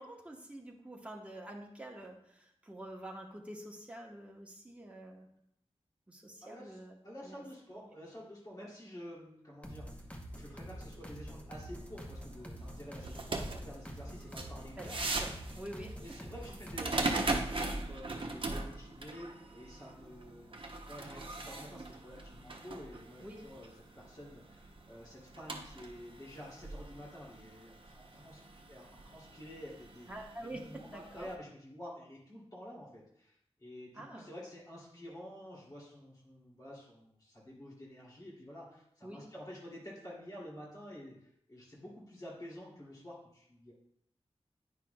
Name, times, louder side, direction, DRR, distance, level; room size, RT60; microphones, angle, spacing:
voice 1, 0.0-5.3 6.1-7.0 7.2-7.4 14.8-16.0 23.2-23.4 30.1-31.3 33.9-34.3 39.0-39.3, right 1 dB, 10° right, 0 dB, 1.0 m, -47 dB
voice 2, 6.4-15.0 16.0-20.6 20.9-23.7 24.0-30.1 30.4-43.7, equal, 35° left, -6 dB, 2.6 m, -50 dB
sound 1, 9.6-17.1, equal, 10° left, 0.9 m, -47 dB
sound 2, 11.7-31.3, right 2 dB, 55° right, 0.7 m, -41 dB
9.5 x 6.0 x 2.3 m, 0.71 s
wide cardioid pair, 90°, 11 cm